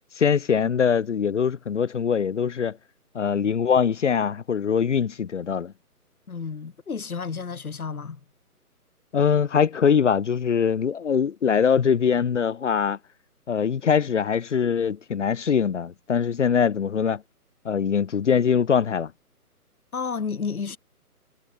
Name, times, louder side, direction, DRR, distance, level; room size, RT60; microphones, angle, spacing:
voice 1, 0.2-2.8 3.1-5.7 9.1-13.0 13.5-17.2 17.6-19.1, left 7 dB, 50° left, 1.2 m, -22 dB
voice 2, 6.3-8.2 19.9-20.8, left 5 dB, 65° left, 5.1 m, -31 dB
hypercardioid pair, 160°, 46 cm